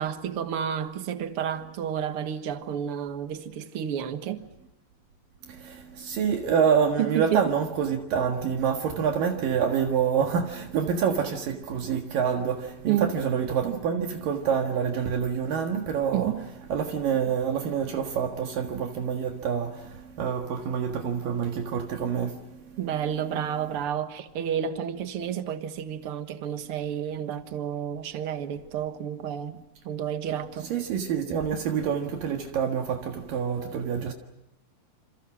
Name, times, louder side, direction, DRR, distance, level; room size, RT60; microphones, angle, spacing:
voice 1, 0.0-4.5 7.0-7.5 12.9-13.1 16.1-16.4 22.8-29.6 29.8-30.7, right 9 dB, 55° right, 1.7 m, -30 dB
voice 2, 5.4-16.3 16.7-22.8 30.6-34.1, right 7 dB, 70° right, 3.3 m, -27 dB
28.0 x 27.5 x 6.2 m
omnidirectional pair, 4.2 m